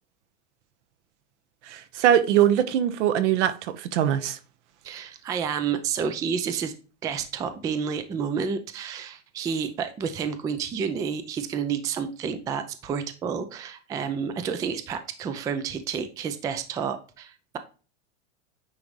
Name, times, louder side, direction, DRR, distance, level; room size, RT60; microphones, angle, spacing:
voice 1, 1.7-4.4, right 10 dB, 75° right, 1.1 m, -22 dB
voice 2, 4.8-6.7 7.0-17.6, right 6 dB, 10° right, 0.3 m, -30 dB
9.5 x 3.9 x 3.1 m
supercardioid pair, 150°, 36 cm